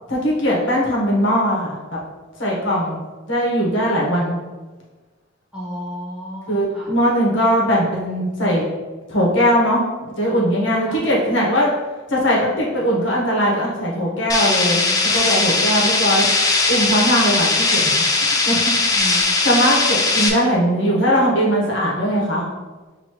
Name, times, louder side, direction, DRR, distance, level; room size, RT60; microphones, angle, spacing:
voice 1, 0.1-1.7 2.4-3.0 3.3-4.3 6.5-8.6 9.1-11.7 12.1-14.9 15.1-16.3 16.7-17.8 18.2-18.7 19.4-22.5, equal, 65° left, -4 dB, 1.0 m, -19 dB
voice 2, 5.5-7.0 10.9-11.0 18.9-19.3, equal, 5° right, -7 dB, 1.1 m, -32 dB
sound 1, 14.3-20.3, left 3 dB, 20° left, 0.4 m, -19 dB
6.1 x 2.6 x 3.0 m, 1.3 s
head